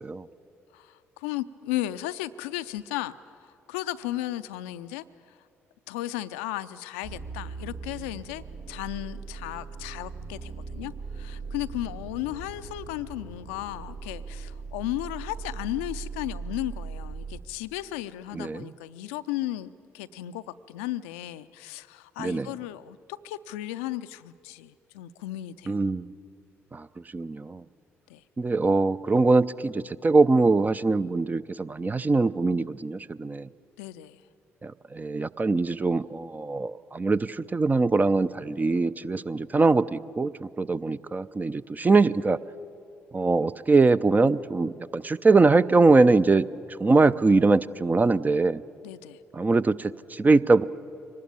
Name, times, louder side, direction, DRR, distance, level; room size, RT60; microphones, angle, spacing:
voice 1, 0.7-3.2 3.7-5.0 5.9-25.8 28.1-28.2 33.8-34.2 48.8-49.2, left 15 dB, 70° left, 12 dB, 0.5 m, -35 dB
sound 1, 7.0-17.4, right 4 dB, 70° right, 1.6 m, -39 dB
voice 2, 18.3-18.7 22.2-22.5 25.7-26.1 26.7-26.9 27.1-27.6 28.4-33.5 34.6-42.4 43.1-46.5 46.8-48.6 49.3-50.6, right 3 dB, 25° right, 15 dB, 0.6 m, -22 dB
24.0 x 19.5 x 8.7 m, 2.5 s
figure-of-eight pair, 40°, 7 cm